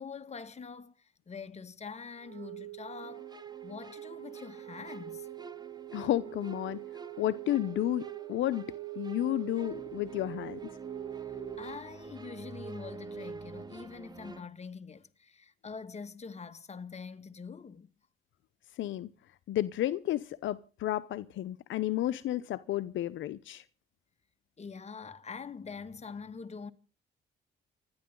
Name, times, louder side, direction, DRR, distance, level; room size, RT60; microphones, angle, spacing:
voice 1, 0.0-3.3 3.6-5.3 11.2-17.9 24.6-26.7, left 5 dB, 35° left, 2.0 m, -44 dB
Wind instrument woodwind instrument, 2.1-11.9, right 19 dB, 85° right, 4.3 m, -44 dB
sound 1, 3.0-14.4, right 3 dB, 20° right, 1.2 m, -48 dB
voice 2, 5.9-6.8 7.2-8.7 9.0-10.6 18.8-19.1 19.5-23.6, left 13 dB, 75° left, 0.8 m, -32 dB
29.0 x 10.5 x 3.8 m
cardioid pair, 90°, 20 cm